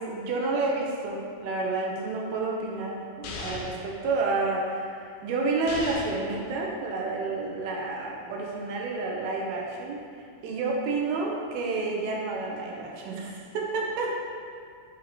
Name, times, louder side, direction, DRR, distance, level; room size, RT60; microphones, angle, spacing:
voice 1, 0.0-14.1, right 3 dB, 85° right, -2 dB, 2.7 m, -30 dB
sound 1, 3.2-3.9 5.7-6.3, left 3 dB, 80° left, 1.9 m, -37 dB
7.8 x 2.9 x 5.8 m, 2.2 s
omnidirectional pair, 4.4 m